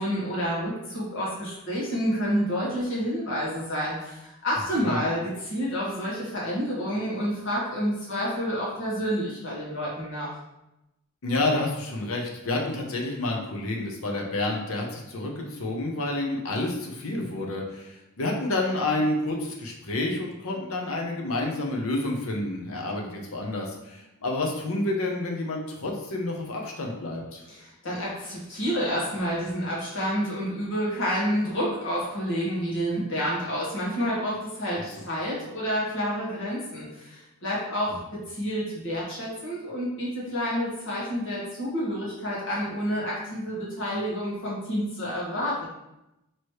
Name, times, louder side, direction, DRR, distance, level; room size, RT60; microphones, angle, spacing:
voice 1, 0.0-10.3 27.5-38.0 38.3-45.7, equal, 55° left, -7 dB, 1.3 m, -29 dB
voice 2, 11.2-27.4 34.8-34.9, left 2 dB, 75° left, 0 dB, 0.8 m, -29 dB
3.1 x 3.0 x 4.6 m, 0.92 s
head